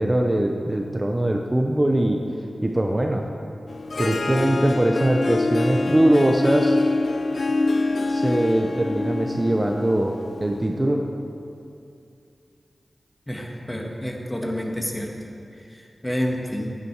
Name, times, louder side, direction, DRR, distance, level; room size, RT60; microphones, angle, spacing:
voice 1, 0.0-2.2 2.6-3.2 4.0-6.8 8.1-11.0, right 1 dB, 25° right, 2 dB, 0.7 m, -21 dB
Harp, 3.7-10.8, left 2 dB, 65° left, 0.6 m, -25 dB
voice 2, 13.3-15.2 15.5-16.7, equal, 15° left, 0 dB, 1.4 m, -29 dB
11.0 x 8.6 x 4.6 m, 2.6 s
wide cardioid pair, 70°, 0 cm